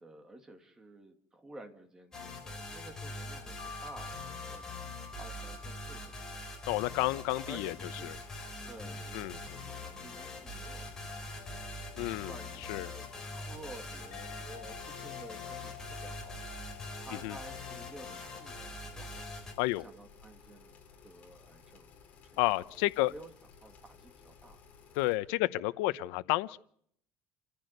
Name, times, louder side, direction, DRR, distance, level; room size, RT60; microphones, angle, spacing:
voice 1, 0.0-3.6 3.8-6.2 7.5-8.2 8.7-11.6 12.2-20.8 21.0-22.0 22.3-23.3 23.6-24.6 24.9-25.0, right 2 dB, 10° right, 2.5 m, -52 dB
sound 1, 2.1-18.6, left 8 dB, 60° left, 7.7 m, -53 dB
sound 2, 2.1-19.5, left 2 dB, 15° left, 4.1 m, -43 dB
voice 2, 6.7-8.2 9.1-9.4 12.0-12.9 17.2-17.4 19.6-19.8 22.4-23.1 24.9-26.6, left 19 dB, 85° left, 0.8 m, -31 dB
sound 3, 7.4-25.1, left 6 dB, 30° left, 4.8 m, -58 dB
29.0 x 15.0 x 6.7 m
cardioid pair, 175°, 5 cm